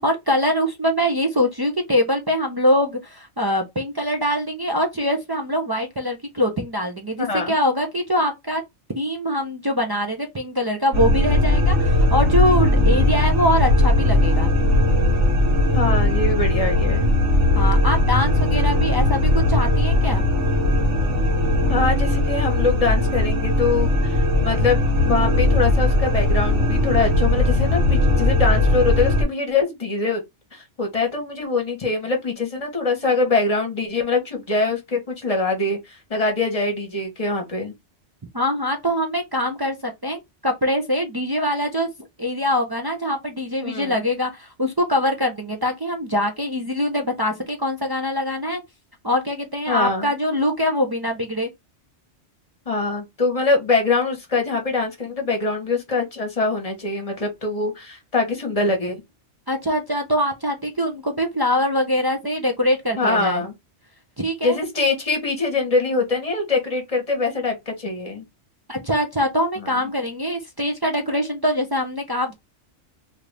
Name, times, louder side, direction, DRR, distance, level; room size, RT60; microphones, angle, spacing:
voice 1, 0.0-8.6 9.0-14.5 17.5-20.2 38.3-41.9 42.2-48.6 49.0-51.5 59.5-63.4 64.2-64.6 68.7-72.3, equal, 40° right, 0.3 m, -23 dB
voice 2, 7.2-7.5 12.8-13.1 15.7-17.1 21.7-24.8 25.0-30.2 30.5-37.7 43.6-44.0 49.7-50.1 52.7-59.0 63.0-63.5 64.4-68.3 69.6-69.8, left 3 dB, 30° left, 1.1 m, -23 dB
sound 1, 10.9-29.2, left 1 dB, 80° right, 1.2 m, -19 dB
2.8 x 2.5 x 3.2 m
omnidirectional pair, 1.2 m